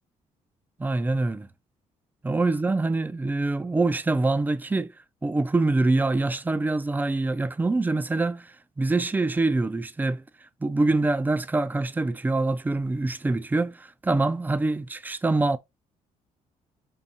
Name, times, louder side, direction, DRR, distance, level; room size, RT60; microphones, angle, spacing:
voice 1, 0.8-1.5 2.2-4.9 5.2-10.2 10.6-15.6, right 2 dB, 15° right, 0.4 m, -25 dB
5.4 x 2.7 x 2.6 m
cardioid pair, 80°, 14 cm